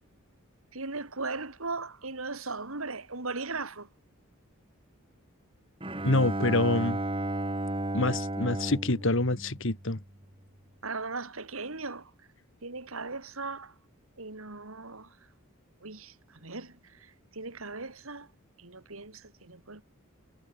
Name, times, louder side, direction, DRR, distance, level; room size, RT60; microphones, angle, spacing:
voice 1, 0.7-3.9 10.8-12.0 12.6-13.7 14.2-15.1 15.8-16.1 16.4-16.7 17.3-18.3 18.6-19.8, right 3 dB, 70° right, 3.0 m, -37 dB
Bowed string instrument, 5.8-10.2, right 1 dB, 25° right, 4.4 m, -33 dB
voice 2, 6.0-7.0 7.9-10.0, left 2 dB, 60° left, 2.2 m, -26 dB
head